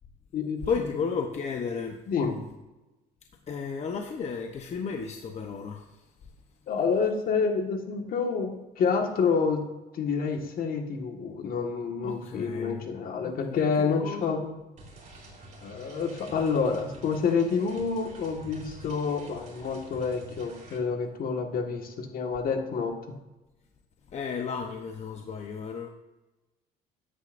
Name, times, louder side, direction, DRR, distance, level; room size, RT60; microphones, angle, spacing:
voice 1, 0.6-2.0 3.5-6.0 12.0-12.8 13.2-13.7 14.0-14.4 24.1-25.9, left 5 dB, 40° left, 3 dB, 0.9 m, -33 dB
voice 2, 2.1-2.4 6.7-9.6 9.9-14.5 15.6-22.9, left 5 dB, 60° left, 4 dB, 1.7 m, -28 dB
sound 1, 14.8-20.8, right 2 dB, 45° right, 3.9 m, -48 dB
13.0 x 10.0 x 2.6 m, 1.0 s
cardioid pair, 110°, 17 cm